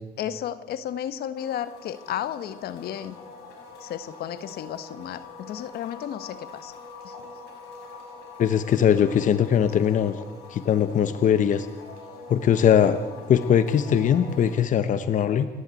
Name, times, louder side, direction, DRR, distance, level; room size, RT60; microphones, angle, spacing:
voice 1, 0.2-3.2 3.8-6.8 7.0-7.2, left 10 dB, 65° left, 13 dB, 1.3 m, -33 dB
sound 1, 1.3-14.6, left 3 dB, 85° left, 6.3 m, -44 dB
voice 2, 8.4-10.2 10.5-11.7 12.3-13.0 13.3-15.5, left 8 dB, 50° left, 11 dB, 1.1 m, -20 dB
29.0 x 11.5 x 9.1 m, 1.3 s
cardioid pair, 110°, 17 cm